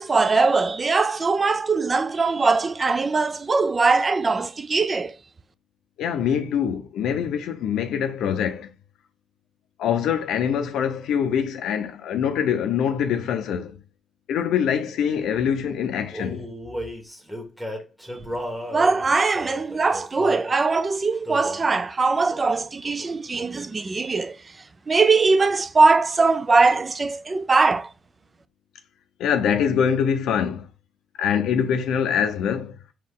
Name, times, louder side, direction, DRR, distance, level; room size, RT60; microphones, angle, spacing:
voice 1, 0.0-5.1 18.7-24.4 24.9-27.9, right 4 dB, 30° right, 0.3 m, -21 dB
voice 2, 6.0-8.7 9.8-13.7 14.3-16.5 29.2-30.7 31.2-32.8, left 8 dB, 80° left, 0.5 m, -24 dB
Male singing, 16.1-20.5 21.2-21.7 22.3-22.6 22.8-23.8, equal, 5° right, 1.2 m, -35 dB
4.3 x 2.4 x 3.6 m
cardioid pair, 90°, 0 cm